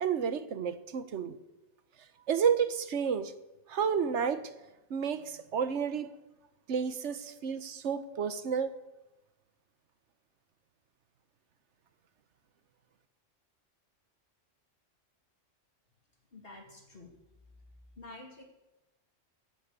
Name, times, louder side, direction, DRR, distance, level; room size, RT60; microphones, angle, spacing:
voice 1, 0.0-1.4 2.3-3.3 3.7-4.5 4.9-6.1 6.7-8.7, right 7 dB, 65° right, 1.2 m, -31 dB
voice 2, 16.3-17.1 18.0-18.4, left 2 dB, 50° left, 2.8 m, -49 dB
10.5 x 10.5 x 8.2 m
omnidirectional pair, 1.3 m